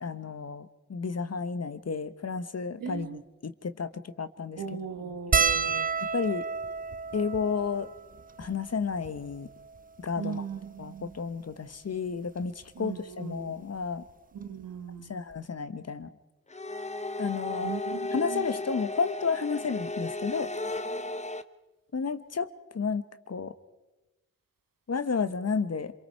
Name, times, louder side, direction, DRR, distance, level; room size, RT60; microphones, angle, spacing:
voice 1, 0.0-4.6 6.1-6.4 7.1-7.9 8.4-9.5 10.0-10.4 10.8-14.0 15.1-16.1 17.2-17.7 18.1-20.5 21.9-23.5 24.9-25.9, left 5 dB, 50° left, 11 dB, 1.3 m, -32 dB
voice 2, 2.8-3.2 4.6-5.9 10.2-11.1 12.8-13.6 14.3-15.2 17.6-18.5, right 7 dB, 80° right, 9 dB, 1.4 m, -38 dB
sound 1, 5.3-9.9 10.7-10.8 11.0-11.2 12.4-12.6 14.1-14.2 14.4-14.6, right 5 dB, 25° right, 0.6 m, -31 dB
sound 2, 16.5-21.4, left 2 dB, 20° left, 1.0 m, -34 dB
26.5 x 23.0 x 4.7 m, 1.1 s
supercardioid pair, 45°, 33 cm